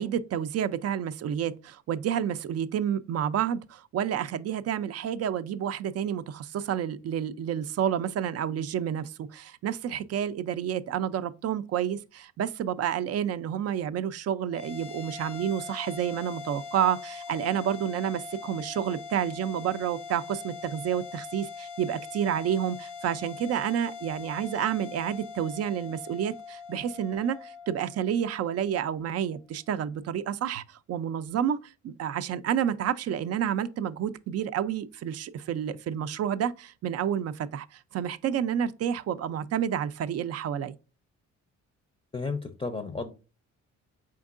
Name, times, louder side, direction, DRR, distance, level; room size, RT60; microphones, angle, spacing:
voice 1, 0.0-40.7, right 9 dB, 55° right, 0.4 m, -30 dB
sound 1, 14.5-29.1, left 5 dB, 85° left, 0.7 m, -42 dB
voice 2, 42.1-43.1, left 4 dB, 20° left, 0.5 m, -33 dB
4.5 x 3.6 x 2.4 m
cardioid pair, 90°, 30 cm